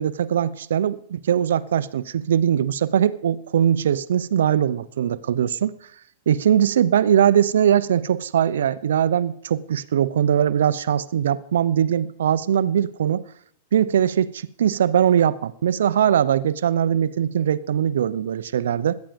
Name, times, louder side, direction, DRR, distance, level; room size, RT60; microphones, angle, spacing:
voice 1, 0.0-5.7 6.3-13.2 13.7-19.0, right 9 dB, 75° right, 0.8 m, -21 dB
17.5 x 12.5 x 5.3 m
hypercardioid pair, 105°, 0 cm